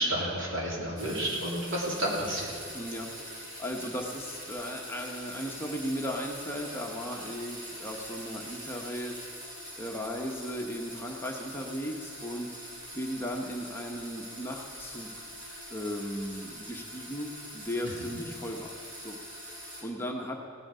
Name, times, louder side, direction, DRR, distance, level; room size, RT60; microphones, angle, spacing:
voice 1, 0.0-2.5, right 1 dB, 65° right, -4 dB, 3.3 m, -30 dB
sound 1, 1.0-19.8, equal, 40° right, 4.2 m, -44 dB
voice 2, 2.7-9.2 9.7-12.7 12.9-15.3 15.7-18.7 19.0-20.4, equal, 10° left, 1 dB, 1.0 m, -36 dB
17.0 x 9.9 x 5.5 m, 2.3 s
head